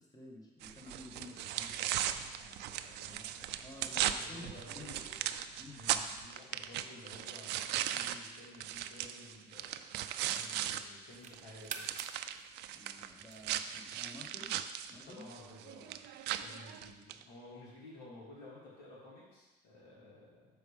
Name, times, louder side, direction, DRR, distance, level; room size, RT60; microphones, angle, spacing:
voice 1, 0.0-1.8 3.1-5.8 12.7-15.3, left 1 dB, 20° left, -1 dB, 1.6 m, -52 dB
sound 1, 0.6-10.8 11.1-17.2, right 11 dB, 85° right, 0.4 m, -38 dB
voice 2, 1.4-5.1 5.7-9.8 10.3-11.9 15.1-16.0 16.3-20.5, left 1 dB, 80° left, -6 dB, 2.7 m, -54 dB
sound 2, 9.8-10.3 10.8-13.8, right 6 dB, 50° right, 0.7 m, -49 dB
6.9 x 4.8 x 5.1 m, 1.1 s
cardioid pair, 110°, 17 cm